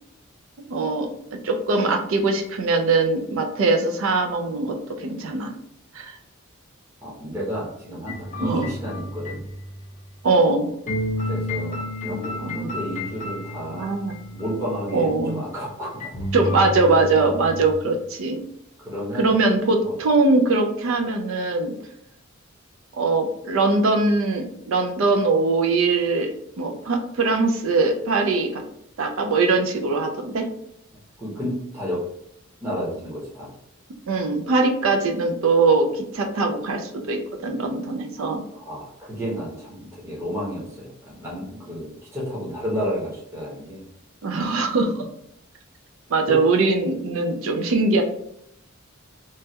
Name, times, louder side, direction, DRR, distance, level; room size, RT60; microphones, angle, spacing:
voice 1, 0.6-1.1 1.4-5.5 5.9-6.2 8.4-8.7 10.2-10.7 12.0-12.1 12.4-12.8 13.7-14.1 14.9-15.4 16.3-18.4 19.2-21.7 22.9-28.6 29.0-30.4 34.1-38.4 44.2-45.1 46.1-48.0, right 3 dB, 65° right, 4 dB, 0.4 m, -21 dB
voice 2, 7.0-9.4 11.2-13.9 14.3-16.3 17.2-17.3 18.8-19.3 19.8-19.9 31.2-32.0 32.6-33.5 38.5-43.8 46.3-46.4, equal, 15° right, -7 dB, 0.8 m, -31 dB
sound 1, 8.1-10.3 10.9-15.2 16.0-17.7, left 1 dB, 35° left, 0.6 m, -32 dB
3.1 x 2.3 x 2.7 m, 0.76 s
head